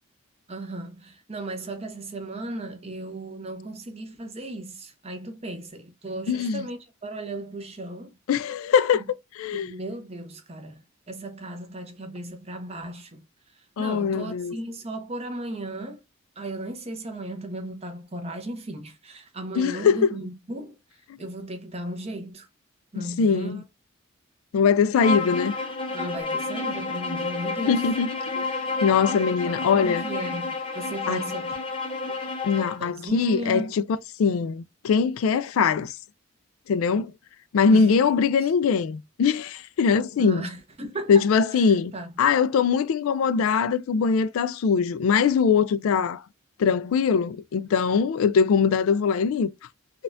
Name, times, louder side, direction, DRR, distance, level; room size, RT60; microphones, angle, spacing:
voice 1, 0.5-8.1 9.5-13.2 13.6-16.0 16.4-20.8 21.2-22.5 22.9-23.6 25.9-27.9 29.4-31.5 32.8-33.7 37.7-37.9 38.4-38.5 40.2-41.2 41.5-42.1, right 1 dB, 30° right, 0.7 m, -36 dB
voice 2, 6.3-6.7 8.3-9.0 9.4-9.7 13.8-14.6 19.5-20.2 21.1-21.2 22.9-23.6 24.5-25.6 27.6-28.4 28.8-30.0 31.1-31.3 32.4-33.8 34.2-36.0 36.7-37.1 37.5-40.4 41.1-41.9 42.2-46.2 46.6-49.5, left 6 dB, 75° left, 0.3 m, -22 dB
Bowed string instrument, 24.9-32.8, left 3 dB, 25° left, 0.5 m, -30 dB
4.1 x 2.3 x 2.5 m
head